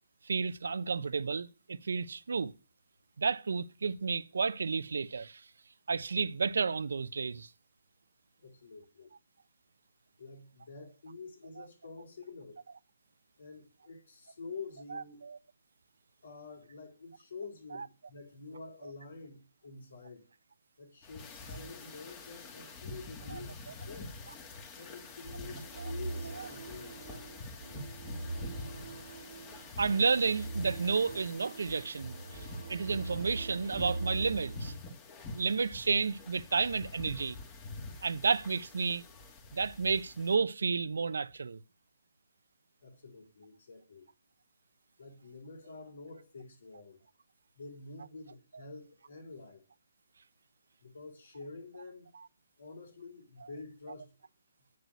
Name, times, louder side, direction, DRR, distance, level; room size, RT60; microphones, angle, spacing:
voice 1, 0.3-2.5 3.2-5.4 5.9-7.5 14.9-15.4 17.7-17.9 18.8-18.9 23.3-23.4 26.4-26.5 29.8-32.2 32.7-34.7 35.3-37.4 38.0-39.0 39.5-41.6, right 5 dB, 80° right, 0.8 m, -31 dB
voice 2, 8.4-9.1 10.2-12.6 13.4-15.3 16.2-20.3 20.8-24.2 24.7-27.0 42.8-44.1 45.0-47.0 47.5-49.7 50.8-52.1 52.6-54.2, left 4 dB, 70° left, 4.3 m, -48 dB
sound 1, 21.0-40.3, left 2 dB, 25° left, 2.6 m, -46 dB
sound 2, 25.3-34.8, right 2 dB, 60° right, 1.4 m, -42 dB
9.5 x 7.8 x 9.5 m
hypercardioid pair, 145°, 0 cm